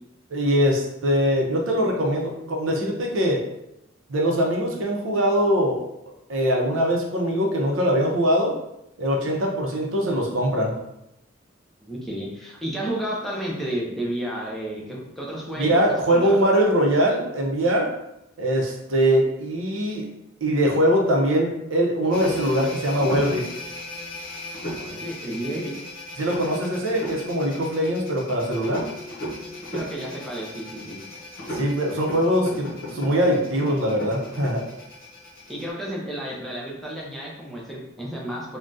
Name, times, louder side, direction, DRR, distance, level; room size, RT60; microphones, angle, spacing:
voice 1, 0.3-3.4 4.1-5.8 6.3-8.5 9.0-10.7 15.6-17.9 18.4-20.0 20.4-23.4 26.2-28.8 31.5-34.6, equal, 80° right, 0 dB, 0.6 m, -22 dB
voice 2, 11.8-15.8 16.1-16.5 24.8-25.7 29.7-31.0 35.5-38.6, right 1 dB, ahead, -4 dB, 0.5 m, -32 dB
sound 1, 22.1-35.7, left 1 dB, 50° left, 0.7 m, -36 dB
3.4 x 2.2 x 2.6 m, 0.86 s
head